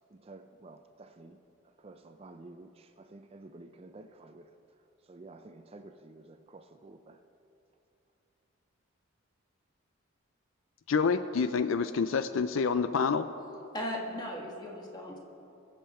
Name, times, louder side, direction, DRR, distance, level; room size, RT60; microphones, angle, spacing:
voice 1, 0.1-1.4 1.8-4.5 5.1-7.2, right 2 dB, 25° right, 8 dB, 0.4 m, -51 dB
voice 2, 10.9-13.3, left 5 dB, 65° left, 11 dB, 0.4 m, -27 dB
voice 3, 13.7-15.2, equal, 20° left, -1 dB, 1.5 m, -37 dB
22.5 x 7.6 x 4.3 m, 2.8 s
head